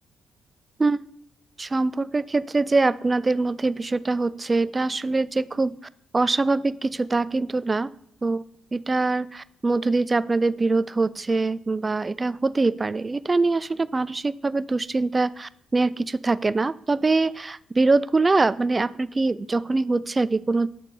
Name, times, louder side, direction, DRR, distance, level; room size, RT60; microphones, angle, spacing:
voice 1, 1.6-5.7 6.1-7.9 8.2-8.4 8.7-20.7, right 3 dB, 25° right, 17 dB, 0.3 m, -23 dB
7.1 x 4.1 x 5.3 m, 0.70 s
cardioid pair, 90°, 0 cm